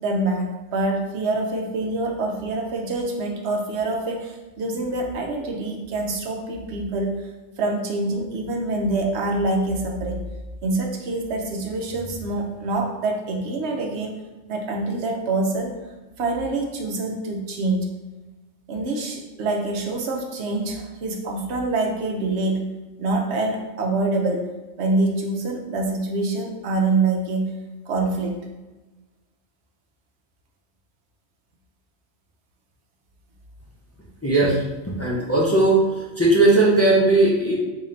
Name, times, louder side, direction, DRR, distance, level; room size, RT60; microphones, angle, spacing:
voice 1, 0.0-7.2 7.6-10.2 10.6-14.2 14.5-15.7 16.2-17.9 18.7-22.7 23.0-24.5 24.8-27.5 27.9-28.5, right 2 dB, 70° right, 1 dB, 0.9 m, -25 dB
voice 2, 34.2-34.6 35.0-37.6, right 2 dB, 25° left, -5 dB, 0.3 m, -18 dB
3.8 x 2.7 x 3.1 m, 1.2 s
omnidirectional pair, 1.2 m